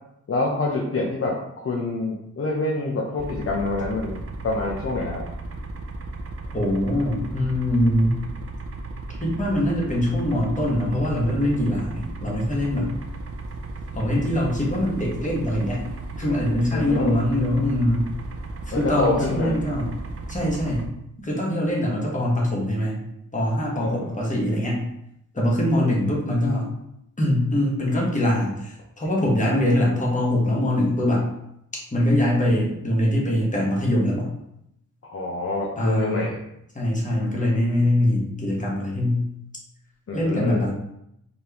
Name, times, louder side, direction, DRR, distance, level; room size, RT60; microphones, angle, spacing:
voice 1, 0.3-5.3 16.7-17.2 18.7-19.6 23.8-24.2 25.7-25.9 35.0-36.4 40.1-40.6, left 3 dB, 40° left, -2 dB, 0.6 m, -26 dB
sound 1, 3.2-20.9, right 2 dB, 40° right, 0.4 m, -35 dB
voice 2, 6.5-8.2 9.2-12.9 13.9-15.9 16.2-18.1 18.7-19.9 20.3-20.9 21.2-23.0 23.3-24.8 25.3-26.7 27.2-31.3 31.9-34.3 35.8-36.3 36.7-39.2 40.1-40.7, left 1 dB, 20° left, -3 dB, 1.1 m, -23 dB
4.3 x 3.3 x 2.8 m, 0.79 s
wide cardioid pair, 145°, 35 cm